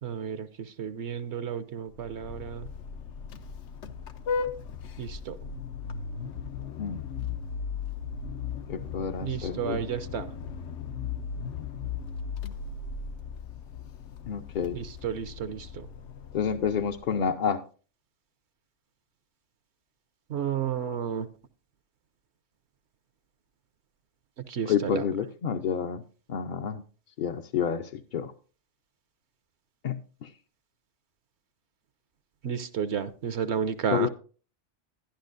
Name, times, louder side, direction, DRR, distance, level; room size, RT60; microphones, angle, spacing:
voice 1, 0.0-2.7 5.0-5.4 9.2-10.3 14.7-15.9 20.3-21.3 24.5-25.0 32.4-34.1, right 8 dB, 70° right, 12 dB, 0.9 m, -32 dB
Vehicle horn car horn honking, 1.9-17.3, left 6 dB, 75° left, 1.0 m, -37 dB
voice 2, 8.7-9.8 14.3-14.8 16.3-17.6 24.7-26.0 26.3-26.8 27.2-28.3 29.8-30.3 33.9-34.1, left 7 dB, 55° left, 4 dB, 0.6 m, -29 dB
11.5 x 11.0 x 2.5 m, 0.37 s
omnidirectional pair, 1.2 m